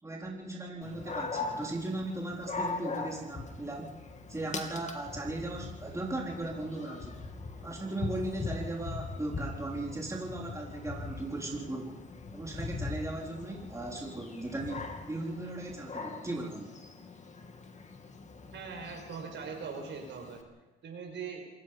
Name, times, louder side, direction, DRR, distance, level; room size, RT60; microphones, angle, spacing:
voice 1, 0.0-3.9 4.3-7.2 7.6-12.0 12.3-16.7, right 2 dB, 15° right, -2 dB, 4.0 m, -37 dB
Dog, 0.8-20.4, left 3 dB, 35° left, 2.7 m, -41 dB
voice 2, 18.5-20.4 20.8-21.5, right 5 dB, 65° right, 3 dB, 5.8 m, -41 dB
27.0 x 18.0 x 5.7 m, 1.1 s
cardioid pair, 90°, 20 cm